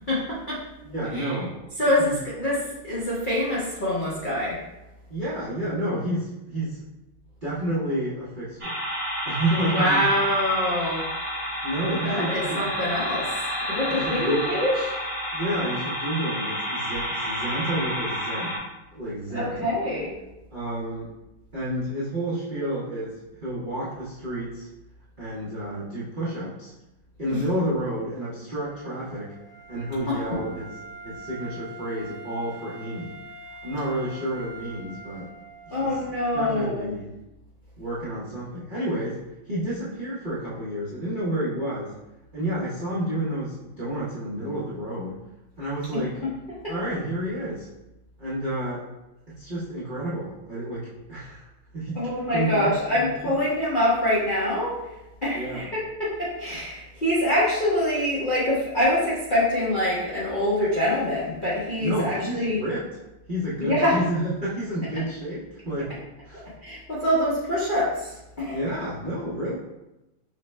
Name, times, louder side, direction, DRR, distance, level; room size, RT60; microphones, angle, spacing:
voice 1, 0.1-0.6 1.1-1.4 1.8-4.7 9.5-11.1 12.0-15.0 19.3-20.1 27.3-27.4 30.1-30.4 35.7-36.9 45.9-46.3 46.6-46.7 51.9-62.6 63.6-64.0 66.3-68.6, left 1 dB, 80° left, -8 dB, 0.4 m, -25 dB
voice 2, 0.8-1.6 2.0-2.2 5.1-6.8 7.4-8.8 9.2-10.0 11.6-12.7 13.8-14.4 15.3-18.6 18.9-19.7 20.5-21.1 21.5-24.7 25.2-26.7 27.2-29.3 29.7-30.7 31.0-33.1 33.6-35.3 35.7-36.0 36.3-37.1 37.8-39.2 39.4-41.9 42.3-45.2 45.6-46.2 46.7-47.7 48.2-48.8 49.3-51.5 51.7-52.1 52.3-53.4 55.3-55.7 61.8-62.8 63.3-65.9 66.2-66.5 68.4-69.5, right 1 dB, 70° right, -10 dB, 0.4 m, -30 dB
sound 1, 8.6-18.6, equal, 25° right, 0.6 m, -30 dB
Wind instrument woodwind instrument, 28.6-36.4, right 2 dB, 45° left, 0.8 m, -44 dB
5.6 x 2.2 x 3.2 m, 0.95 s
omnidirectional pair, 2.3 m